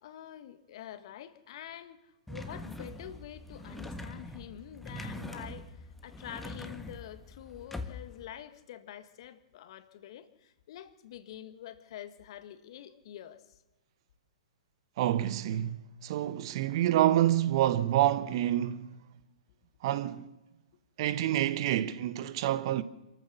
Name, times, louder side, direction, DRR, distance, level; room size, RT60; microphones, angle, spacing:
voice 1, 0.0-13.6, left 11 dB, 50° left, 1.5 m, -47 dB
sound 1, 2.3-8.3, left 1 dB, 5° left, 1.5 m, -43 dB
voice 2, 15.0-19.0 19.8-20.3 21.0-22.8, right 13 dB, 45° right, 1.1 m, -28 dB
27.0 x 14.0 x 7.0 m
figure-of-eight pair, 115°, 4 cm